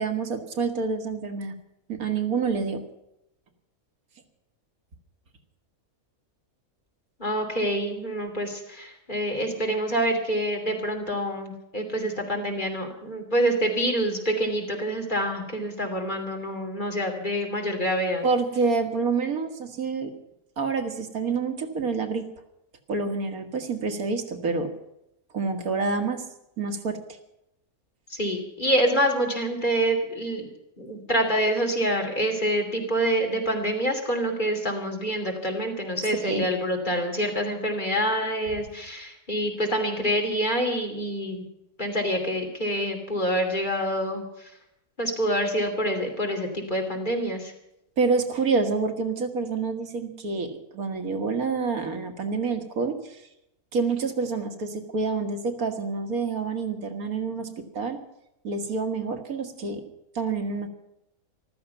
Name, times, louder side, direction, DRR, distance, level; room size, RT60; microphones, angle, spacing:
voice 1, 0.0-1.5 1.9-2.8 18.2-20.1 20.6-22.3 22.9-24.7 25.3-26.2 26.6-27.0 36.2-36.5 48.0-53.2 53.7-58.0 58.4-59.8 60.2-60.7, right 4 dB, 75° right, 5 dB, 1.9 m, -27 dB
voice 2, 7.2-18.2 28.1-30.5 30.8-41.4 41.8-44.2 45.0-47.5, equal, 30° left, 2 dB, 3.0 m, -26 dB
14.5 x 13.0 x 7.0 m, 0.84 s
omnidirectional pair, 1.5 m